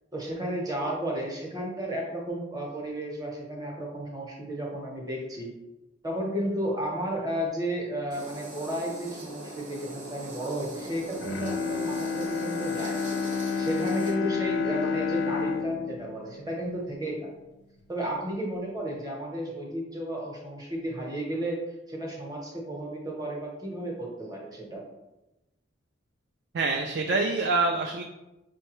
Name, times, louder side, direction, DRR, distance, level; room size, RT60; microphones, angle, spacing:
voice 1, 0.1-5.5 6.0-13.0 13.6-17.3 17.9-21.6 21.9-24.8, right 1 dB, 20° right, -1 dB, 0.8 m, -33 dB
Electric welding with tig - Run, 8.1-14.1, right 2 dB, 90° right, 1.1 m, -41 dB
Bowed string instrument, 11.1-17.4 17.8-17.9, left 5 dB, 65° left, 0.4 m, -30 dB
voice 2, 26.5-28.0, right 3 dB, 60° right, 3 dB, 0.3 m, -26 dB
5.3 x 2.2 x 3.0 m, 0.97 s
head